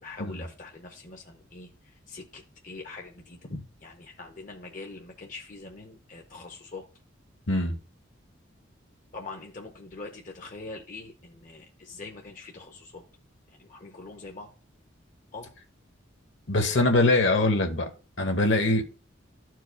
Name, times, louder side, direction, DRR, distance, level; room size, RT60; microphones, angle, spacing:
voice 1, 0.0-6.9 9.1-13.1 13.5-14.5 15.3-15.5, left 3 dB, 40° left, 0.7 m, -43 dB
voice 2, 7.5-7.8 16.5-17.9 18.2-18.8, left 2 dB, 65° left, 1.0 m, -23 dB
13.5 x 4.6 x 2.2 m
head